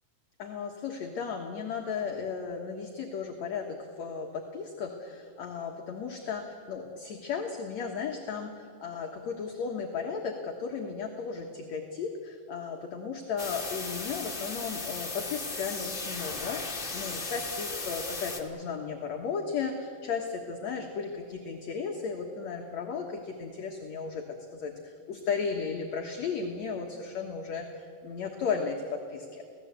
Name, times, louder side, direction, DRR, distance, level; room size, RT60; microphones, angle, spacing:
voice 1, 0.4-29.6, left 5 dB, 55° left, 1 dB, 2.2 m, -35 dB
sound 1, 13.4-18.4, left 3 dB, 25° left, 1.0 m, -36 dB
27.5 x 17.5 x 8.2 m, 2.4 s
omnidirectional pair, 4.5 m